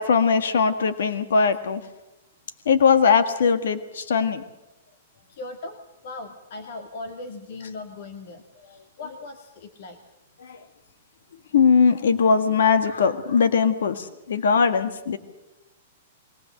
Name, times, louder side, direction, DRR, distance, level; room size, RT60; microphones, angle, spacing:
voice 1, 0.0-1.8 2.7-4.4 10.4-10.6 11.5-15.2, left 5 dB, 85° left, 9 dB, 1.8 m, -20 dB
voice 2, 5.3-5.8 6.0-10.0, left 2 dB, 60° left, 6 dB, 2.2 m, -38 dB
22.5 x 18.5 x 7.7 m, 0.98 s
hypercardioid pair, 155°, 0 cm